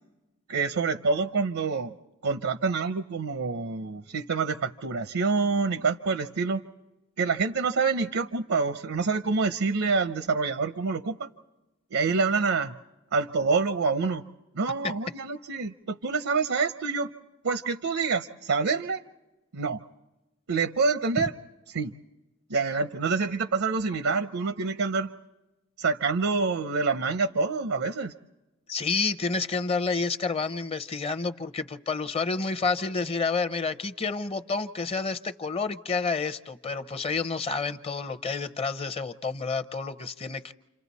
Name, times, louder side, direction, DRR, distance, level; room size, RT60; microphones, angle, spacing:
voice 1, 0.5-2.0 2.2-6.6 7.2-11.3 11.9-12.8 13.1-14.2 14.5-17.1 17.4-19.0 19.5-19.8 20.5-21.3 21.7-21.9 22.5-25.1 25.8-28.1, right 4 dB, 75° right, 10 dB, 0.6 m, -27 dB
voice 2, 28.7-40.5, left 4 dB, 25° left, 12 dB, 0.6 m, -29 dB
30.0 x 26.5 x 4.1 m, 1.1 s
head